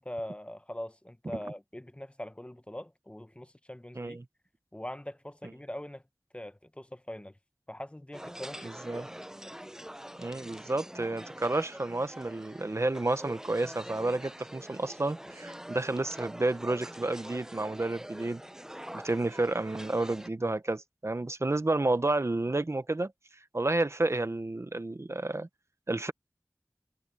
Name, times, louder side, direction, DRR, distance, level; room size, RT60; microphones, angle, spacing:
voice 1, 0.0-4.2 4.7-6.0 6.3-7.4 7.7-9.1, left 1 dB, 20° left, 0.9 m, -42 dB
sound 1, 8.1-20.3, equal, 10° right, 0.6 m, -45 dB
voice 2, 8.6-9.1 10.2-18.4 18.9-23.1 23.5-25.5 25.9-26.1, right 2 dB, 50° right, 0.9 m, -30 dB
wide cardioid pair, 45°, 6 cm